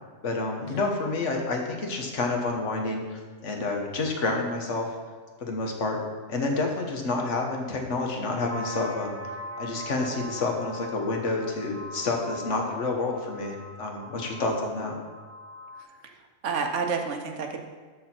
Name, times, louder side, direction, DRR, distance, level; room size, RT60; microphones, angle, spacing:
voice 1, 0.2-4.9 5.4-6.0 6.3-9.1 9.6-14.9, left 3 dB, 80° left, 2 dB, 1.5 m, -29 dB
sound 1, 8.5-15.8, equal, 25° right, 0.3 m, -41 dB
voice 2, 15.8-16.1 16.4-17.6, right 5 dB, 80° right, 4 dB, 1.2 m, -30 dB
13.0 x 4.3 x 4.4 m, 1.5 s
omnidirectional pair, 1.2 m